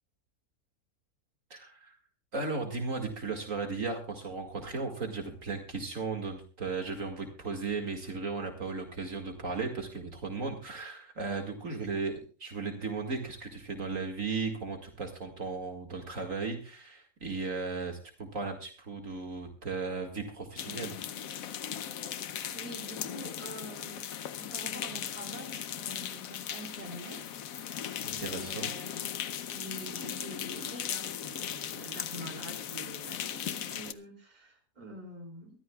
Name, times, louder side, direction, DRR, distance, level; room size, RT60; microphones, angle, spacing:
voice 1, 1.5-2.0 2.3-20.9 28.0-28.7, right 4 dB, 60° right, 4 dB, 2.4 m, -36 dB
sound 1, 20.6-33.9, left 9 dB, 70° left, 1.2 m, -38 dB
voice 2, 22.5-24.1 24.4-27.3 28.2-29.1 29.5-35.6, right 1 dB, 30° right, 1 dB, 3.5 m, -46 dB
23.5 x 14.0 x 2.3 m, 0.38 s
omnidirectional pair, 1.6 m